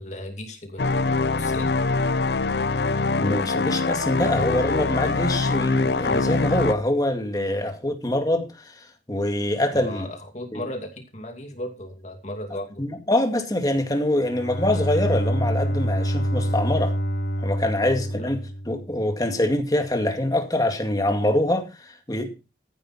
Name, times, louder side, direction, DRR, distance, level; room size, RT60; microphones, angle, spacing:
voice 1, 0.0-1.7 9.7-12.8 17.8-18.3, left 1 dB, 40° left, 2.6 m, -36 dB
sound 1, 0.8-6.7, left 3 dB, 70° left, 0.7 m, -23 dB
voice 2, 3.2-10.1 10.5-10.6 12.8-16.9 17.4-18.4 18.7-22.3, left 1 dB, 20° left, 2.1 m, -24 dB
Bowed string instrument, 14.1-19.1, equal, 90° left, 3.0 m, -26 dB
14.5 x 10.5 x 4.3 m
head